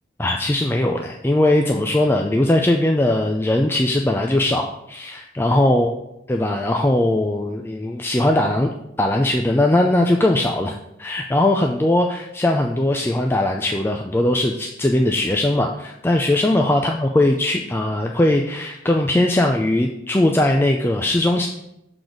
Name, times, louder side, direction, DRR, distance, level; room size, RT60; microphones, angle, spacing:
voice 1, 0.2-5.9 6.3-8.7 9.0-21.5, left 1 dB, 10° left, 2 dB, 0.4 m, -19 dB
6.8 x 3.9 x 6.1 m, 0.84 s
head